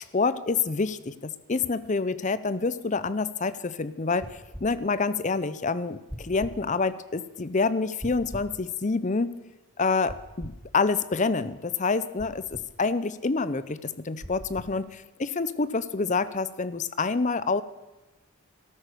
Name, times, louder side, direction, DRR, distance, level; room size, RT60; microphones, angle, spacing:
voice 1, 0.0-9.3 9.8-17.6, left 4 dB, 35° left, 15 dB, 0.6 m, -27 dB
sound 1, 4.2-4.7 6.1-6.6 8.0-8.5 10.1-10.6 12.2-12.7 14.2-14.7, equal, 5° right, 1.3 m, -40 dB
13.0 x 13.0 x 6.8 m, 1.1 s
head